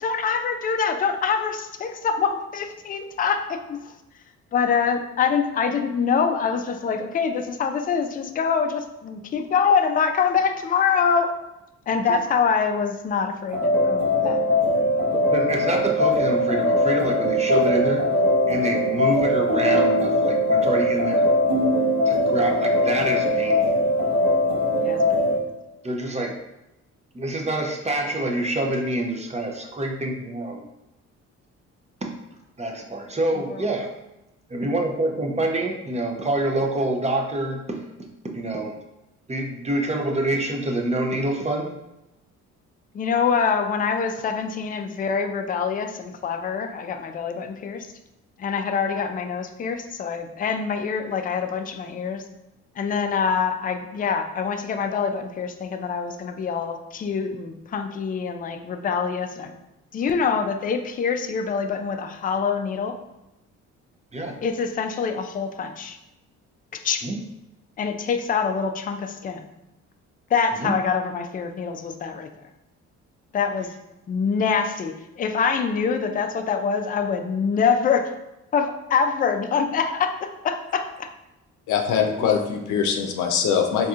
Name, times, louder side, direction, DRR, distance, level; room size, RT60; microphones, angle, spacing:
voice 1, 0.0-3.9 4.5-11.3 11.9-14.4 24.8-25.3 28.6-28.7 33.3-33.6 42.9-47.9 48.4-52.2 52.8-59.5 59.9-63.0 64.4-66.0 66.7-67.0 67.8-69.4 70.3-72.3 73.3-73.7 74.1-78.1 78.5-81.1, left 6 dB, 30° left, 6 dB, 0.3 m, -25 dB
sound 1, 13.5-25.4, left 1 dB, 90° right, 0.9 m, -21 dB
voice 2, 15.1-18.0 18.5-21.3 22.1-23.8 25.8-26.3 27.1-30.6 32.0-32.1 32.6-33.9 34.5-37.8 38.2-38.7 39.3-41.7 64.1-64.4 67.0-67.2 70.6-70.8 81.9-82.3, right 1 dB, 20° right, 1 dB, 0.5 m, -26 dB
voice 3, 81.7-83.9, left 7 dB, 85° left, 4 dB, 0.6 m, -22 dB
4.1 x 2.7 x 2.4 m, 0.92 s
cardioid pair, 90°, 30 cm